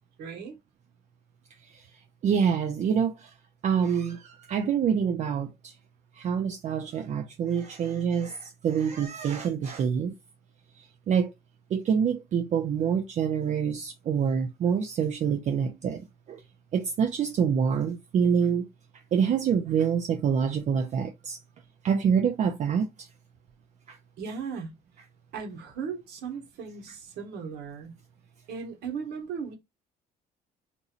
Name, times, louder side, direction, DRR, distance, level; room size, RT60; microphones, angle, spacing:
voice 1, 0.2-0.6 24.2-24.7 25.3-27.9 28.5-29.5, right 6 dB, 75° right, 1.1 m, -37 dB
voice 2, 2.2-3.3 3.6-5.7 6.2-10.1 10.8-11.3 11.7-16.4 16.7-18.6 19.1-21.4 21.8-23.1 23.9-24.0, right 7 dB, 45° right, 0.4 m, -26 dB
2.8 x 2.6 x 2.4 m
cardioid pair, 110°, 17 cm